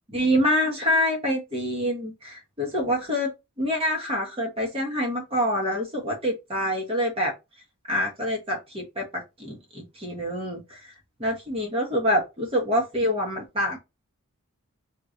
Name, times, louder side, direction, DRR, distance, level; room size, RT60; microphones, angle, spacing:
voice 1, 0.1-3.3 3.6-7.3 7.9-10.9 11.2-13.8, equal, 25° right, 1.1 m, -26 dB
3.8 x 2.9 x 3.8 m
head